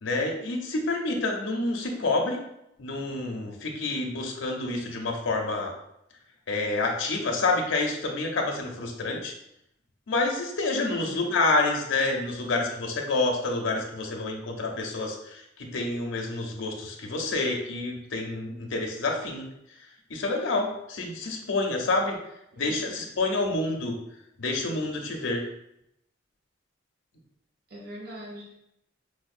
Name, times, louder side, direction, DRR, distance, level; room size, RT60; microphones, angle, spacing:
voice 1, 0.0-2.4 2.8-5.7 6.5-9.3 10.1-19.5 20.1-22.2 22.6-23.9 24.4-25.4, left 2 dB, 90° left, 1 dB, 0.6 m, -28 dB
voice 2, 1.8-2.2 10.8-11.1 22.5-23.0 27.7-28.5, equal, 55° right, -4 dB, 0.8 m, -43 dB
4.9 x 2.1 x 2.5 m, 0.81 s
head